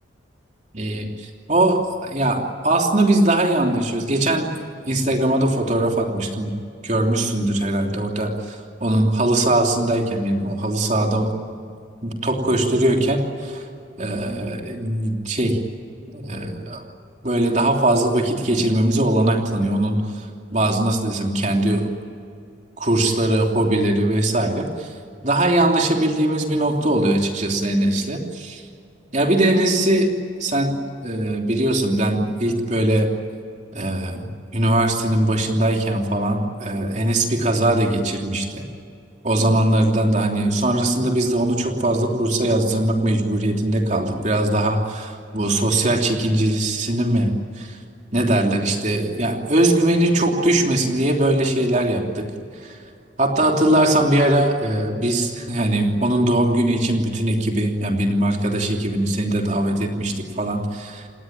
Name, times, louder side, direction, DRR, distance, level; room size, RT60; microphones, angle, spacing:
voice 1, 0.7-4.5 4.9-6.5 6.8-11.6 12.0-13.6 14.0-15.6 16.1-16.8 17.2-21.9 22.8-24.9 25.2-28.6 29.1-30.1 30.4-30.7 31.0-33.1 33.7-34.3 34.5-38.7 39.2-47.3 47.6-47.8 48.1-52.3 52.6-52.8 53.2-61.0, right 1 dB, 35° right, 2 dB, 3.1 m, -21 dB
29.0 x 19.0 x 9.0 m, 2.4 s
head